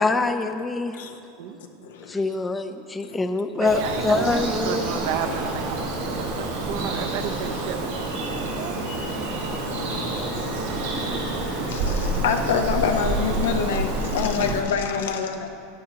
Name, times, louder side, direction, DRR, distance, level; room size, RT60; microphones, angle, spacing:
voice 1, 0.0-0.9 2.1-5.0, left 3 dB, 15° left, 9 dB, 0.5 m, -24 dB
voice 2, 1.8-2.2 3.0-3.2 8.2-8.5 9.6-11.1 11.6-15.5, left 6 dB, 85° left, 5 dB, 0.8 m, -27 dB
voice 3, 3.5-5.8 6.2-7.9 8.3-8.8 9.1-9.2, right 8 dB, 65° right, 8 dB, 0.6 m, -32 dB
Bird vocalization bird call bird song, 3.6-14.6, right 2 dB, 80° right, 2.4 m, -28 dB
11.0 x 9.0 x 2.9 m, 2.5 s
supercardioid pair, 120°, 0 cm